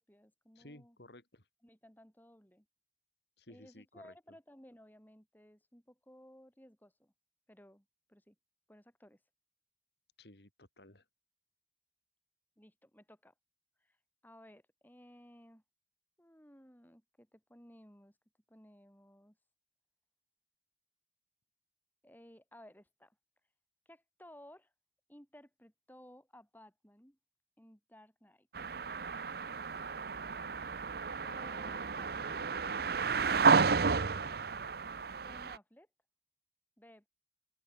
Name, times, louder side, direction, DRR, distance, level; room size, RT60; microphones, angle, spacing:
voice 1, 0.0-1.0 1.6-2.7 3.5-7.1 7.5-8.4 8.7-9.2 12.6-13.3 13.8-14.0 14.2-15.6 16.2-18.2 18.5-19.4 22.0-23.2 23.9-24.7 25.1-27.2 27.6-28.5 31.0-32.5 35.2-35.9 36.8-37.1, equal, 10° left, 7.6 m, -58 dB
voice 2, 0.5-1.5 3.4-4.1 10.2-11.0, left 1 dB, 65° left, 4.2 m, -56 dB
sound 1, 28.5-35.6, right 5 dB, 55° right, 0.7 m, -32 dB
head